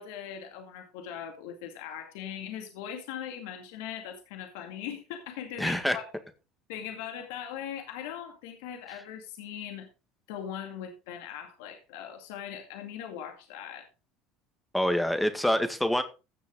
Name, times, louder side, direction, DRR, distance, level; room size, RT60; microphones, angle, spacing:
voice 1, 0.0-6.0 6.7-9.9 10.3-13.9, left 9 dB, 80° left, 4 dB, 2.2 m, -40 dB
voice 2, 5.6-6.0 14.7-16.0, left 1 dB, 5° left, 8 dB, 1.8 m, -26 dB
16.0 x 6.6 x 3.7 m, 0.30 s
supercardioid pair, 90°, 0 cm